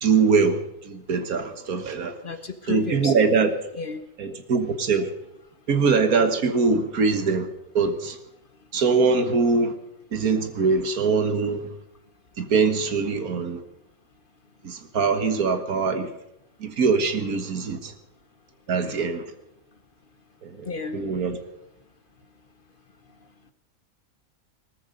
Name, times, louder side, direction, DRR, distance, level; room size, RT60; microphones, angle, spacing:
voice 1, 0.0-2.2 2.7-3.5 4.2-5.1 5.7-7.5 7.7-8.2 8.7-9.7 10.1-11.7 12.4-13.6 14.6-16.1 16.6-17.9 18.7-19.2 20.4-21.4, right 4 dB, 80° right, 1.9 m, -23 dB
voice 2, 2.2-3.3 3.7-4.0 20.6-21.0, left 4 dB, 40° left, 1.0 m, -32 dB
19.0 x 13.5 x 5.2 m
omnidirectional pair, 1.5 m